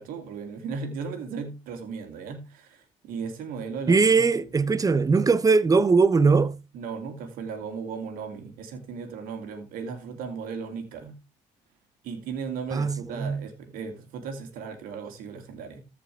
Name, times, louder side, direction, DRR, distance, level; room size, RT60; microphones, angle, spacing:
voice 1, 0.0-4.3 4.5-4.6 6.7-11.1 12.0-15.8, right 5 dB, 80° right, 2.4 m, -36 dB
voice 2, 3.9-6.5 12.7-13.4, right 4 dB, 25° right, 0.8 m, -20 dB
14.5 x 5.2 x 3.3 m
supercardioid pair, 75°, 15 cm